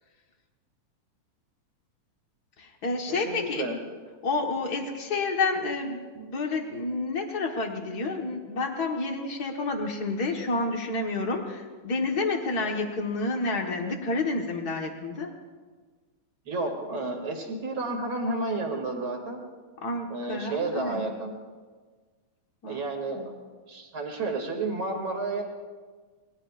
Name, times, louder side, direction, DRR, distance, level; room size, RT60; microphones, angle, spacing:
voice 1, 2.6-3.7 4.2-15.3 19.8-21.0 22.6-22.8 23.1-23.3, left 3 dB, 60° left, 2 dB, 1.0 m, -29 dB
voice 2, 3.3-3.8 16.5-19.5 20.1-21.3 22.6-23.2 23.7-25.4, right 3 dB, 40° right, 2 dB, 2.9 m, -31 dB
26.5 x 21.0 x 2.5 m, 1.4 s
omnidirectional pair, 3.9 m